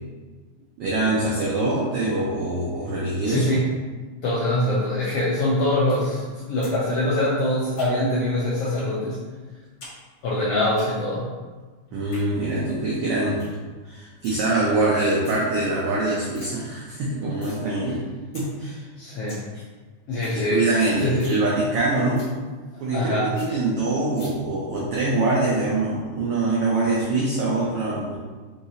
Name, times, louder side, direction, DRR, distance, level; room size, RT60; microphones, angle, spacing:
voice 1, 0.8-3.4 11.9-13.4 13.8-18.0 18.3-18.9 20.3-22.2 22.8-28.2, right 2 dB, 85° right, -5 dB, 1.2 m, -24 dB
voice 2, 3.2-3.7 4.2-9.2 10.2-11.3 19.0-19.4 20.1-20.6 21.0-21.3 22.9-23.3, left 1 dB, 80° left, -6 dB, 1.3 m, -23 dB
sound 1, 6.6-6.8 7.1-8.2 8.8-8.9 9.3-10.0 10.2-10.8 11.9-12.2 12.7-12.8 13.1-13.2 13.4-13.6 13.9-14.4 15.0-15.4 15.9-16.0 16.1-16.5 16.9-17.6 18.0-18.1 18.3-18.5 18.8-18.9 19.1-19.4 19.8-19.9 20.1-20.4 20.7-20.8 21.1-21.4 21.7-21.8 22.2-22.3 22.7-22.8 23.0-23.1 23.4-23.5 24.2-24.3, left 2 dB, 50° left, 1.5 m, -44 dB
5.2 x 2.8 x 2.8 m, 1.4 s
omnidirectional pair, 3.3 m